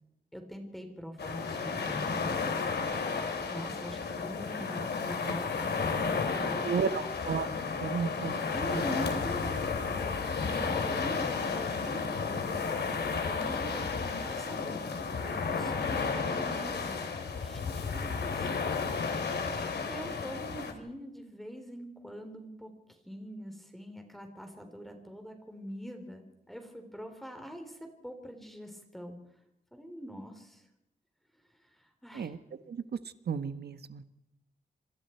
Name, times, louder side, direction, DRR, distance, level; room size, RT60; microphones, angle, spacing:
voice 1, 0.3-2.3 3.2-5.5 5.9-7.1 8.5-12.8 13.2-14.8 15.2-18.7 19.4-29.2 29.7-30.6 31.7-32.3, equal, ahead, 4 dB, 3.7 m, -43 dB
sound 1, 1.2-20.7, left 5 dB, 85° left, 3.3 m, -32 dB
voice 2, 6.6-7.5 7.8-8.8 32.1-32.4 32.7-32.8 33.3-34.0, right 6 dB, 75° right, 11 dB, 1.3 m, -33 dB
27.5 x 26.0 x 4.6 m, 0.87 s
wide cardioid pair, 125°, 17 cm